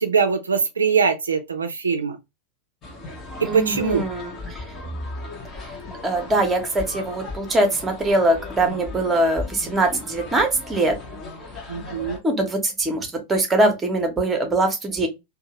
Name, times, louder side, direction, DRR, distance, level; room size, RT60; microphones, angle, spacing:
voice 1, 0.0-2.2 3.5-4.1 11.7-12.2, right 5 dB, 75° right, 0.3 m, -22 dB
sound 1, 2.8-12.2, left 2 dB, 30° left, 0.8 m, -36 dB
voice 2, 3.4-4.6 5.5-5.8 6.0-10.9 12.2-15.1, right 2 dB, 15° right, 0.8 m, -22 dB
2.6 x 2.1 x 2.8 m
figure-of-eight pair, 90°, 0 cm